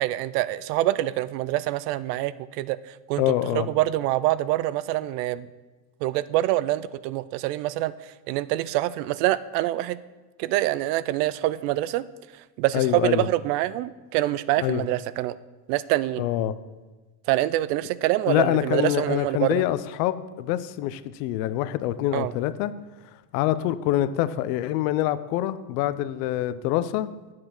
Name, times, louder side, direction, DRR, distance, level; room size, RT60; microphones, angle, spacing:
voice 1, 0.0-2.8 3.1-3.2 3.5-5.5 6.0-7.9 8.3-10.0 10.4-12.0 12.6-15.3 15.7-16.3 17.3-19.6 22.1-22.3, right 15 dB, 75° right, 17 dB, 0.6 m, -25 dB
voice 2, 3.2-3.7 12.7-13.3 14.6-14.8 16.2-16.5 18.3-22.7 23.3-27.1, left 13 dB, 75° left, 14 dB, 0.8 m, -25 dB
8.8 x 7.6 x 6.0 m, 1.2 s
supercardioid pair, 120°, 48 cm